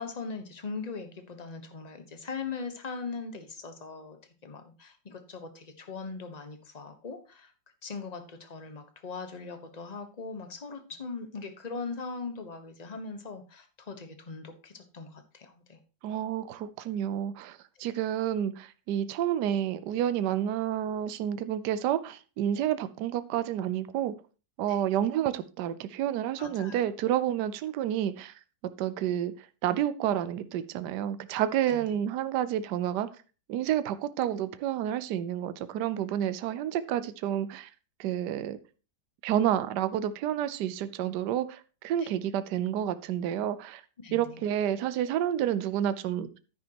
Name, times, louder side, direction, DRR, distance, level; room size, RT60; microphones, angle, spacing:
voice 1, 0.0-4.2 4.4-7.5 7.8-15.8 24.7-24.8 26.4-26.8 31.7-31.8 42.0-42.1 44.0-44.4, left 4 dB, 25° left, 1.1 m, -40 dB
voice 2, 16.0-24.1 24.6-28.3 28.8-29.3 29.6-33.1 33.5-37.7 38.0-38.6 39.2-43.8 44.1-46.3, right 10 dB, 75° right, 1.2 m, -29 dB
10.0 x 9.4 x 2.9 m
omnidirectional pair, 1.8 m